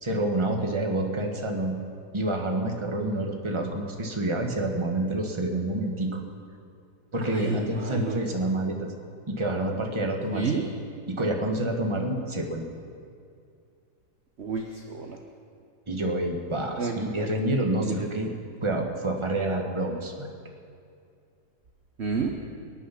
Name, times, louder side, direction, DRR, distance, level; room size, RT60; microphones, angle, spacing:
voice 1, 0.0-1.7 2.1-6.2 7.1-8.9 9.3-10.6 11.1-12.6 15.9-18.3 18.6-20.3, right 1 dB, 15° right, 2 dB, 1.3 m, -28 dB
voice 2, 7.3-8.2 10.3-10.6 14.4-15.2 16.8-17.0 17.9-18.1 22.0-22.3, right 4 dB, 45° right, 3 dB, 1.0 m, -30 dB
22.0 x 9.6 x 5.8 m, 2.4 s
omnidirectional pair, 2.0 m